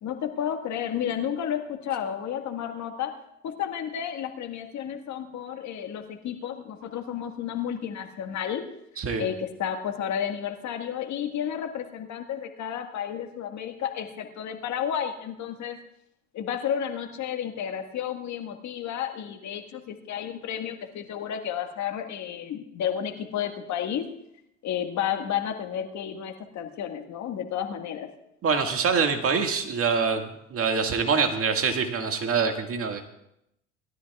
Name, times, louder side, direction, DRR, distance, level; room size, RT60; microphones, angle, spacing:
voice 1, 0.0-3.1 3.4-8.6 9.2-15.8 16.3-24.1 24.6-28.1, left 9 dB, 50° left, 5 dB, 1.7 m, -32 dB
voice 2, 28.4-33.0, right 5 dB, 35° right, 4 dB, 1.9 m, -25 dB
20.5 x 13.0 x 2.4 m, 0.80 s
hypercardioid pair, 75°, 37 cm